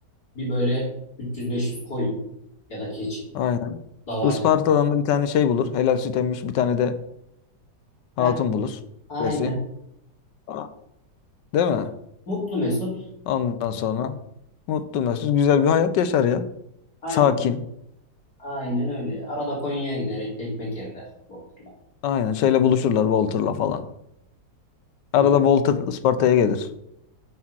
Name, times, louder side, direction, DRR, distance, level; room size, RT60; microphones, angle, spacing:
voice 1, 0.3-0.9 1.2-2.2 2.7-3.2 4.1-4.5 8.2-8.4 9.1-9.6 12.3-13.0 17.0-17.4 18.4-21.0 21.3-21.7 25.1-25.3, left 1 dB, 60° left, -5 dB, 3.6 m, -28 dB
voice 2, 3.3-3.8 4.2-7.0 8.2-8.7 9.2-9.5 10.5-10.7 11.5-11.9 13.3-14.1 14.7-16.4 17.1-17.6 22.0-23.8 25.1-26.7, left 8 dB, 90° left, 11 dB, 1.4 m, -21 dB
7.0 x 6.7 x 6.2 m, 0.78 s
omnidirectional pair, 1.9 m